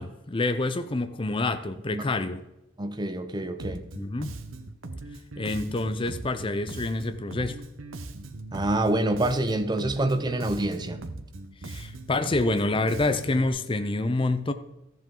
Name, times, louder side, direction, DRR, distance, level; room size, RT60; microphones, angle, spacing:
voice 1, 0.0-2.4 3.9-4.4 5.4-7.6 11.6-14.5, left 2 dB, 25° left, 0.6 m, -27 dB
voice 2, 2.8-3.8 8.5-11.0, right 1 dB, 20° right, 0.7 m, -26 dB
Bass guitar, 3.6-13.5, right 2 dB, 85° right, 0.9 m, -40 dB
14.0 x 7.5 x 3.8 m
head